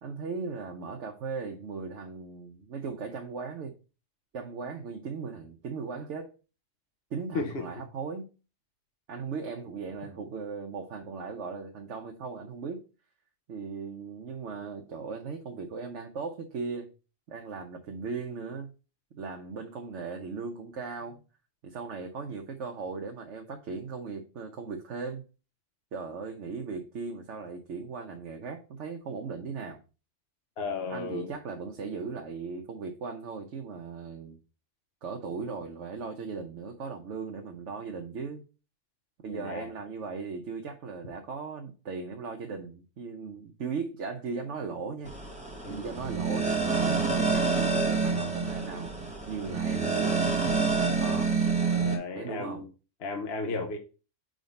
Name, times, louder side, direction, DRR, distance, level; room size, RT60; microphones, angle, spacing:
voice 1, 0.0-3.7 4.3-6.3 7.1-8.3 9.1-12.9 13.5-16.9 17.3-18.7 19.1-21.2 21.6-25.2 25.9-29.8 30.9-34.4 35.0-38.4 39.2-45.1 45.7-50.3 51.0-51.3 52.2-52.6, right 5 dB, 70° right, 1.1 m, -38 dB
voice 2, 7.3-7.7 30.6-31.3 39.3-39.7 45.6-45.9 51.6-52.7 53.0-53.8, left 3 dB, 55° left, 1.1 m, -34 dB
sound 1, 45.1-52.0, right 4 dB, 5° right, 1.4 m, -27 dB
5.0 x 3.9 x 5.2 m
omnidirectional pair, 1.3 m